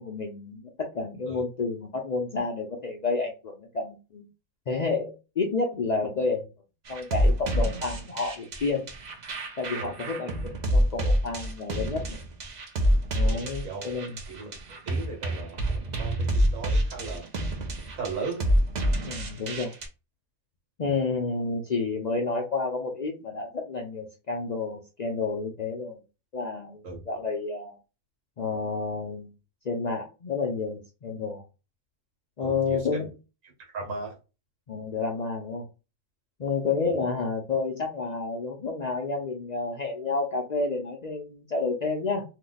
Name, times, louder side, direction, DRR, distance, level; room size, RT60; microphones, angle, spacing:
voice 1, 0.0-4.3 4.7-6.5 6.9-8.8 9.6-12.2 13.1-14.2 19.0-19.7 20.8-26.0 26.3-27.8 28.4-29.3 29.6-31.4 32.4-33.1 34.7-35.7 36.4-42.2, left 4 dB, 85° left, 0 dB, 0.3 m, -30 dB
sound 1, 6.9-19.9, equal, 45° right, 0.5 m, -27 dB
voice 2, 13.2-13.9 14.3-14.5 14.8-15.7 16.0-16.2 16.5-17.3 18.0-18.5 26.8-27.0 32.4-33.1 33.7-34.1 36.8-37.0, right 4 dB, 70° right, 0 dB, 1.4 m, -36 dB
2.7 x 2.2 x 3.8 m, 0.30 s
omnidirectional pair, 1.5 m